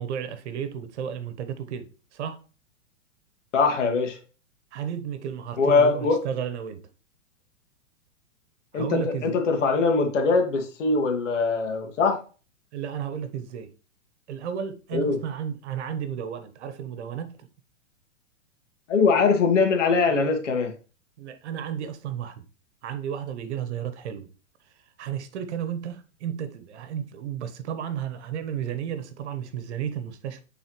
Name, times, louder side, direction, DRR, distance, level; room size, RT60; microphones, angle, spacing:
voice 1, 0.0-2.4 4.7-6.8 8.7-9.4 12.7-13.7 14.3-17.5 21.2-22.4 22.8-24.3 25.0-30.4, right 8 dB, 65° right, 1.2 m, -33 dB
voice 2, 3.5-4.2 5.6-6.2 8.7-12.2 14.9-15.2 18.9-20.7, left 4 dB, 75° left, 1.9 m, -22 dB
9.1 x 4.0 x 3.1 m
hypercardioid pair, 115°, 37 cm